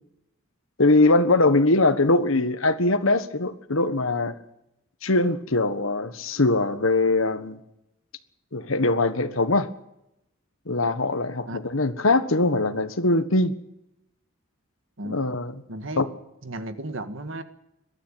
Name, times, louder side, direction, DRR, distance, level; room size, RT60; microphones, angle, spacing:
voice 1, 0.8-4.3 5.0-7.6 8.5-9.7 10.7-13.5 15.0-15.5 16.0-16.1, left 2 dB, 70° left, 11 dB, 1.4 m, -22 dB
voice 2, 15.7-16.0 16.4-17.4, right 1 dB, 65° right, 9 dB, 1.8 m, -34 dB
22.5 x 12.5 x 9.1 m, 0.84 s
head